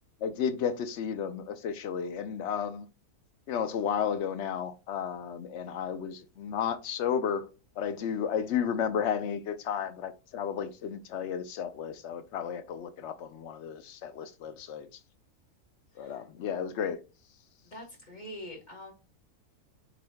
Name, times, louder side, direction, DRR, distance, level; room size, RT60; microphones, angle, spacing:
voice 1, 0.2-2.9 3.5-7.5 7.8-14.9 16.0-17.0, left 7 dB, 60° left, 0.8 m, -33 dB
voice 2, 15.9-16.3 17.6-18.9, left 1 dB, 30° left, 1.7 m, -44 dB
6.8 x 3.3 x 2.2 m
omnidirectional pair, 1.5 m